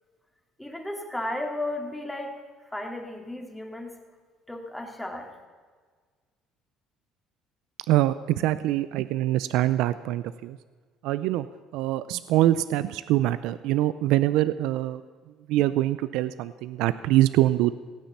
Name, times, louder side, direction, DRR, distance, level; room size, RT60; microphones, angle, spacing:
voice 1, 0.6-2.4 2.7-4.0 4.5-5.3, left 1 dB, 5° left, 2 dB, 2.6 m, -34 dB
voice 2, 7.9-10.6 11.0-11.5 11.7-15.0 15.5-17.7, right 14 dB, 80° right, 14 dB, 0.4 m, -24 dB
17.0 x 9.3 x 7.1 m, 1.5 s
cardioid pair, 110°, 0 cm